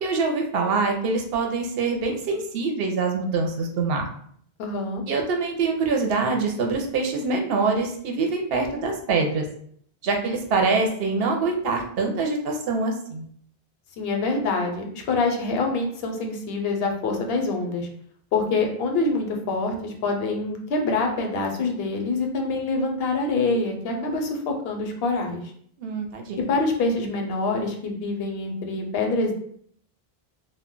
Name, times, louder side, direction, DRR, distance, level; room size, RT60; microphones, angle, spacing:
voice 1, 0.0-4.1 5.1-9.5 10.0-13.3 23.9-24.2 25.8-26.5, right 4 dB, 75° right, 2 dB, 0.8 m, -25 dB
voice 2, 4.6-5.0 14.0-17.9 18.3-25.4 26.4-29.3, left 3 dB, 75° left, 2 dB, 0.8 m, -25 dB
2.2 x 2.1 x 3.6 m, 0.62 s
omnidirectional pair, 1.0 m